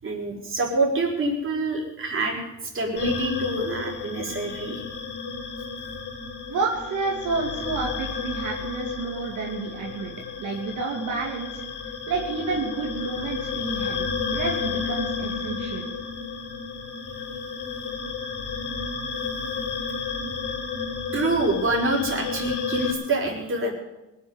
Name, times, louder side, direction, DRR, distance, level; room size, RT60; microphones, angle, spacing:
voice 1, 0.0-2.4 2.7-5.0 17.7-17.8 21.1-23.7, right 2 dB, 45° right, -1 dB, 5.2 m, -26 dB
sound 1, 3.0-22.9, left 5 dB, 85° left, 3.2 m, -32 dB
voice 2, 6.5-10.1 10.4-11.6 12.1-15.9, right 4 dB, 75° right, -1 dB, 2.5 m, -30 dB
19.0 x 7.5 x 9.6 m, 0.99 s
cardioid pair, 90°, 30 cm